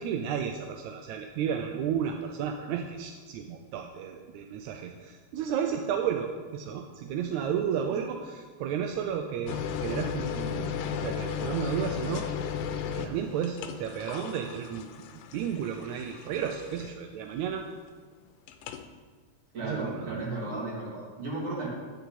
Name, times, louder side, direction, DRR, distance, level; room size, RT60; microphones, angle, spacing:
voice 1, 0.0-12.3 12.9-17.7 19.6-20.3, right 8 dB, 80° right, 4 dB, 1.8 m, -33 dB
sound 1, 9.5-17.1 18.5-18.8, left 7 dB, 85° left, 2.3 m, -35 dB
voice 2, 19.5-21.7, right 2 dB, 45° right, -6 dB, 3.8 m, -34 dB
10.0 x 10.0 x 4.2 m, 1.5 s
omnidirectional pair, 3.8 m